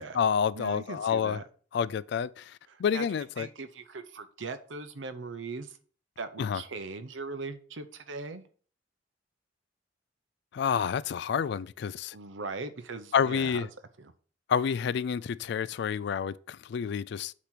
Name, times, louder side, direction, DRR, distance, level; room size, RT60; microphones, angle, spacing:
voice 1, 0.0-1.4 1.7-3.5 6.4-6.6 10.5-12.1 13.1-13.7 14.5-17.3, left 7 dB, 65° left, 0.3 m, -29 dB
voice 2, 0.5-1.4 2.7-3.0 3.4-5.8 6.2-8.4 12.1-13.6 14.0-14.1, right 3 dB, 85° right, 0.8 m, -39 dB
8.3 x 3.0 x 6.0 m
head